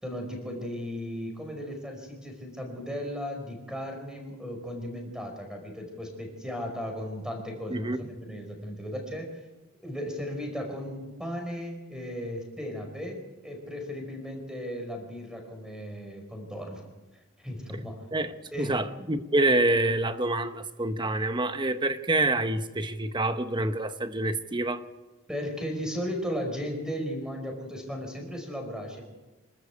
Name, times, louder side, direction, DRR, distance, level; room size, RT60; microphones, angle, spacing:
voice 1, 0.0-9.4 9.8-16.8 17.4-18.0 18.5-18.8 25.3-29.0, equal, 5° right, 4.9 m, -36 dB
voice 2, 18.6-24.8, right 2 dB, 20° right, 0.9 m, -27 dB
26.0 x 13.5 x 8.4 m
head